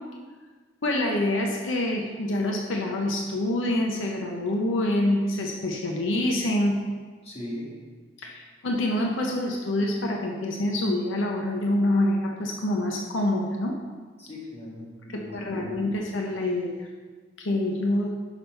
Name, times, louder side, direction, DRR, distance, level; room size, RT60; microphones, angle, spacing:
voice 1, 0.8-6.8 8.2-13.8 15.1-16.9 17.4-18.1, left 1 dB, 85° left, 1 dB, 0.7 m, -26 dB
voice 2, 7.2-7.7 14.2-15.9, left 1 dB, 30° left, -5 dB, 1.7 m, -39 dB
6.1 x 5.4 x 4.4 m, 1.5 s
head